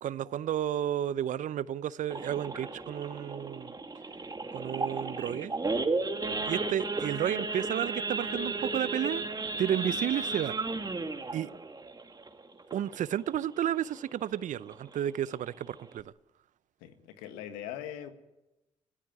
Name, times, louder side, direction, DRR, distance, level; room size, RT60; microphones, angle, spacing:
voice 1, 0.0-3.8 4.5-5.5 6.4-9.2 9.6-10.5 11.3-11.5 12.7-16.1, right 10 dB, 60° right, 0.7 m, -32 dB
Idling / Accelerating revving vroom / Sawing, 2.1-13.2 13.6-13.8 14.0-14.1 14.6-14.9 15.4-15.5 15.7-16.0, right 3 dB, 25° right, 2.4 m, -34 dB
voice 2, 16.8-18.1, left 10 dB, 80° left, 1.6 m, -41 dB
24.0 x 14.5 x 9.3 m
hypercardioid pair, 45°, 15 cm